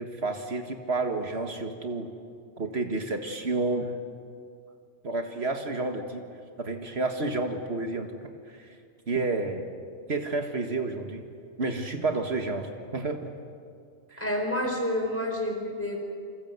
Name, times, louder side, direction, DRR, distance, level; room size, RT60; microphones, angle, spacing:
voice 1, 0.0-2.1 2.6-4.0 5.0-6.2 6.6-8.1 8.5-8.7 9.1-9.7 10.1-11.2 11.6-13.3 14.1-14.2, right 3 dB, 70° right, 5 dB, 1.9 m, -30 dB
voice 2, 14.2-16.0, left 1 dB, 10° left, 1 dB, 4.5 m, -29 dB
28.5 x 26.0 x 8.1 m, 2.3 s
omnidirectional pair, 1.1 m